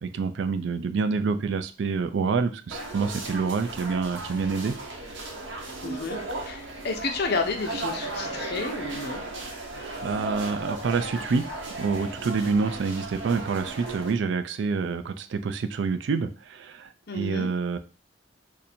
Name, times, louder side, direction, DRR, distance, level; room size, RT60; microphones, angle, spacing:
voice 1, 0.0-4.8 9.8-11.5 11.8-17.8, right 5 dB, 70° right, 10 dB, 0.4 m, -27 dB
sound 1, 2.7-14.1, right 2 dB, 90° right, 0.9 m, -36 dB
voice 2, 5.8-9.2 17.1-17.5, left 3 dB, 60° left, 4 dB, 0.7 m, -31 dB
2.6 x 2.6 x 4.2 m, 0.34 s
head